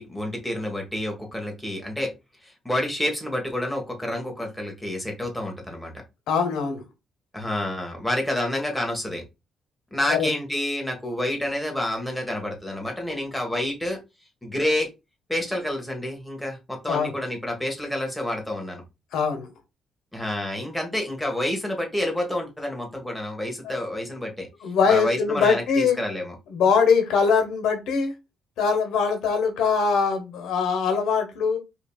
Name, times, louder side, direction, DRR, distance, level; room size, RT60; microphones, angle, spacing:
voice 1, 0.0-2.1 2.4-5.9 7.3-9.2 9.9-14.0 14.4-14.9 15.3-18.8 20.1-24.5 24.9-26.3, left 1 dB, 5° left, 1 dB, 1.5 m, -28 dB
voice 2, 6.3-6.8 10.1-10.3 16.9-17.2 19.1-19.5 23.6-23.8 24.6-26.0 26.5-28.1 28.6-31.6, left 5 dB, 80° left, 6 dB, 0.9 m, -22 dB
5.1 x 2.8 x 2.3 m, 0.25 s
cardioid pair, 90°, 0 cm